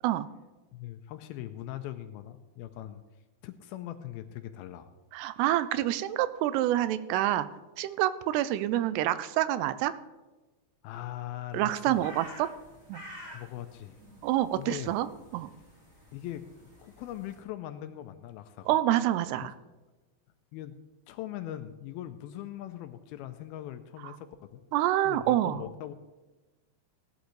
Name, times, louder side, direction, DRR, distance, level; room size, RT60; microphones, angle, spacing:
voice 1, 0.7-3.0 3.4-4.9 10.8-12.1 13.2-14.0 14.5-15.0 16.1-18.8 20.5-20.8 21.1-24.6 25.1-25.9, left 12 dB, 80° left, 9 dB, 2.3 m, -41 dB
voice 2, 5.1-7.5 7.8-9.9 11.5-12.5 12.9-13.0 14.2-15.1 15.3-15.5 18.7-19.5 24.7-25.6, right 13 dB, 90° right, 14 dB, 2.7 m, -27 dB
sound 1, 11.8-17.4, left 1 dB, 25° right, 4.3 m, -50 dB
17.0 x 11.5 x 3.2 m, 1.2 s
omnidirectional pair, 4.7 m